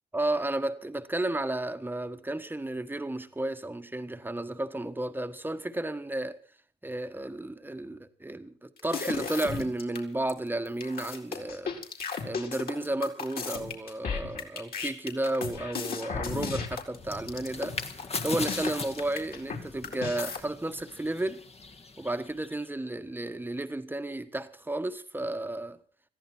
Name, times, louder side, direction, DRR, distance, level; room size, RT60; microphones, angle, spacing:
voice 1, 0.1-6.4 6.8-11.8 12.2-17.8 18.2-21.4 22.0-25.8, right 1 dB, 10° right, 1.5 m, -33 dB
sound 1, 8.8-10.0 10.3-10.4 10.7-19.6 19.8-20.4, left 5 dB, 50° left, 4.2 m, -35 dB
sound 2, 16.9-22.7, left 4 dB, 30° left, 1.7 m, -39 dB
21.0 x 14.5 x 4.5 m
cardioid pair, 90°, 20 cm